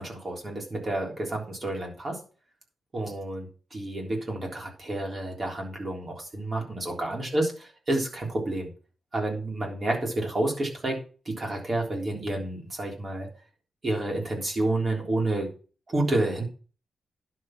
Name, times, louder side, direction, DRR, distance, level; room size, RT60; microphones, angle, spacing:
voice 1, 0.0-2.2 2.9-7.5 7.9-8.7 9.1-11.0 11.3-13.3 13.8-15.5 15.9-16.5, right 2 dB, 30° right, 1 dB, 3.5 m, -29 dB
11.0 x 6.2 x 6.1 m, 0.36 s
wide cardioid pair, 170°, 0 cm